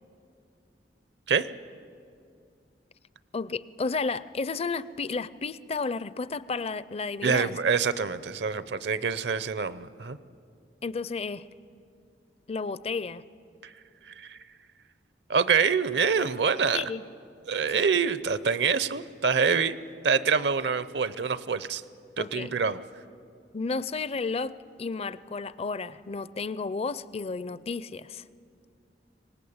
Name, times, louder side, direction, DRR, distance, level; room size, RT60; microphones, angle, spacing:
voice 1, 3.3-7.6 10.8-11.4 12.5-13.2 16.7-17.0 17.7-17.8 22.2-22.5 23.5-28.2, left 4 dB, 35° left, 17 dB, 0.5 m, -32 dB
voice 2, 7.2-10.2 14.2-14.4 15.3-16.9 17.5-19.8 20.0-21.8 22.2-22.8, right 5 dB, 70° right, 15 dB, 0.7 m, -26 dB
24.5 x 19.5 x 8.7 m, 2.4 s
head